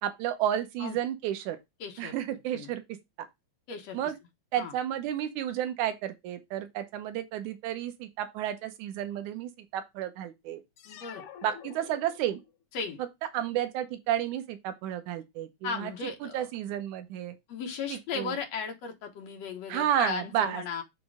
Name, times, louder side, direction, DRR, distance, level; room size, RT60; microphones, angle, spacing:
voice 1, 0.0-1.6 2.0-2.8 3.2-3.3 3.9-4.2 4.5-10.6 11.4-12.4 13.0-13.1 13.3-15.9 16.2-17.3 17.9-18.3 19.7-20.6, right 11 dB, 90° right, 2.3 m, -31 dB
voice 2, 1.8-2.1 2.5-2.7 3.7-4.0 4.6-4.7 10.9-11.2 12.7-13.0 15.6-16.5 17.5-20.8, left 5 dB, 65° left, 2.4 m, -36 dB
sound 1, 10.8-12.6, left 9 dB, 85° left, 2.4 m, -47 dB
8.4 x 3.1 x 4.8 m
omnidirectional pair, 3.4 m